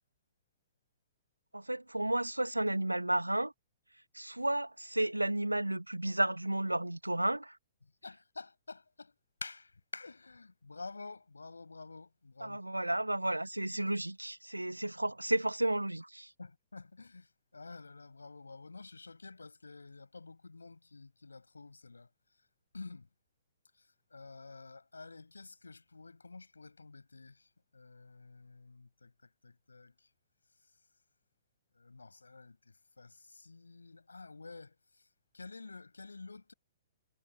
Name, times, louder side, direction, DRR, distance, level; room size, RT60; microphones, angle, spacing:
voice 1, 1.5-3.5 4.1-7.6 12.4-16.3, right 1 dB, 85° right, 2.0 m, -32 dB
voice 2, 8.0-9.1 9.4-12.6 16.4-22.1 22.7-23.1 23.7-30.1 31.7-35.1 35.3-36.5, left 3 dB, 75° left, 7.0 m, -50 dB
figure-of-eight pair, 115°, 0 cm